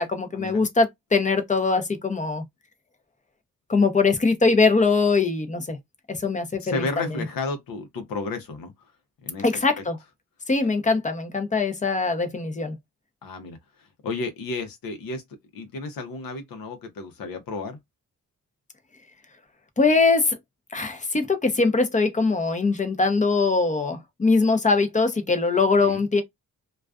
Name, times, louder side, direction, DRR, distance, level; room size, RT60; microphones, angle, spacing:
voice 1, 0.0-2.4 3.7-5.8 6.1-6.9 9.4-10.0 10.5-12.8 19.8-20.4 20.7-26.2, left 4 dB, 20° left, 0.6 m, -22 dB
voice 2, 6.6-8.9 9.2-9.8 13.2-15.2 15.5-17.8 25.8-26.0, left 3 dB, 85° left, 0.7 m, -33 dB
2.3 x 2.3 x 2.2 m
cardioid pair, 95°, 33 cm